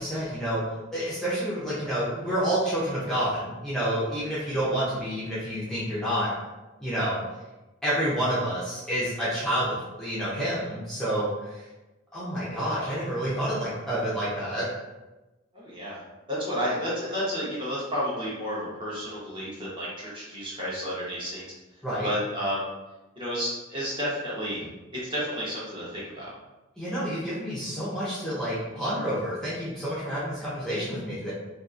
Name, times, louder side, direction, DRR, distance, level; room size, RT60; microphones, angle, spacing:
voice 1, 0.0-6.3 6.8-7.2 7.8-11.6 12.1-14.7 21.8-22.1 26.8-31.3, equal, 5° left, -10 dB, 0.6 m, -29 dB
voice 2, 15.5-16.0 16.3-21.4 22.0-22.6 23.2-24.6 25.1-26.3, equal, 25° right, -7 dB, 0.9 m, -31 dB
2.7 x 2.4 x 2.4 m, 1.1 s
head